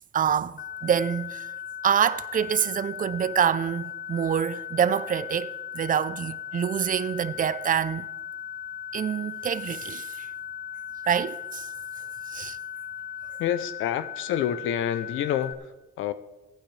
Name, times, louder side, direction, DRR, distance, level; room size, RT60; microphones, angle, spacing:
voice 1, 0.1-0.5 0.8-1.5 1.8-8.1 8.9-10.3 11.0-11.7 12.3-12.6, right 8 dB, 45° right, 0.5 m, -26 dB
sound 1, 0.6-15.5, left 11 dB, 50° left, 0.8 m, -37 dB
voice 2, 13.4-16.1, left 10 dB, 80° left, 0.6 m, -28 dB
21.0 x 8.8 x 3.3 m
cardioid pair, 90°, 20 cm